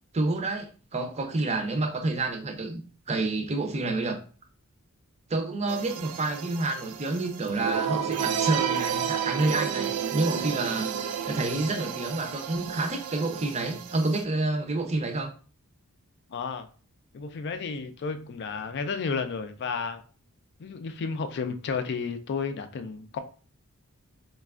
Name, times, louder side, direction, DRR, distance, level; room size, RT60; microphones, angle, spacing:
voice 1, 0.1-4.2 5.3-10.9 11.3-15.3, right 2 dB, 30° right, 0.5 m, -29 dB
sound 1, 5.7-14.2, right 8 dB, 80° right, 0.3 m, -31 dB
voice 2, 16.3-16.7 17.1-20.0 20.6-23.2, left 5 dB, 50° left, 0.4 m, -32 dB
4.1 x 2.2 x 2.4 m
head